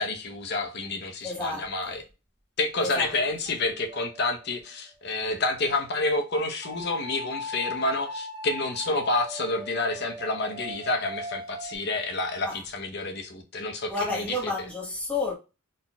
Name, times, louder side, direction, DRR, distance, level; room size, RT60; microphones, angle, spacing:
voice 1, 0.0-2.0 2.6-14.2, left 2 dB, 50° left, 0.8 m, -29 dB
voice 2, 1.2-2.0 2.8-3.1 12.4-12.6 13.9-15.3, left 2 dB, 5° left, 1.2 m, -31 dB
sound 1, 3.9-4.6 6.6-11.8, left 1 dB, 20° right, 0.5 m, -39 dB
4.1 x 3.8 x 2.3 m
head